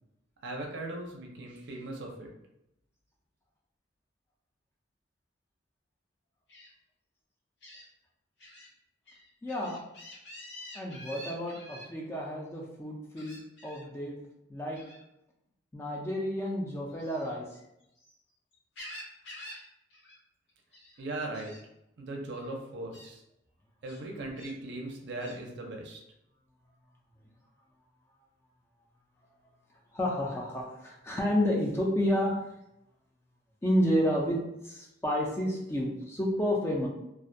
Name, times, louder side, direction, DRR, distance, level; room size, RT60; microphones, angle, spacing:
voice 1, 0.4-2.3 21.0-21.5 22.0-23.2 23.8-26.0, right 2 dB, 60° right, 1 dB, 0.5 m, -38 dB
Gull seagull, 6.5-6.7 7.6-7.8 8.4-8.7 9.1-11.9 13.2-13.9 14.8-15.0 16.9-18.1 18.5-19.7 19.9-20.2 20.5-21.0 21.3-21.6 22.3-22.5 22.9-23.1 23.9-24.6 25.2-25.4, left 1 dB, 65° left, 0.7 m, -48 dB
voice 2, 9.4-9.8 10.7-14.2 14.5-14.8 15.7-17.5 29.9-32.4 33.6-36.9, equal, 15° left, -2 dB, 0.3 m, -30 dB
2.3 x 2.1 x 2.5 m, 0.84 s
head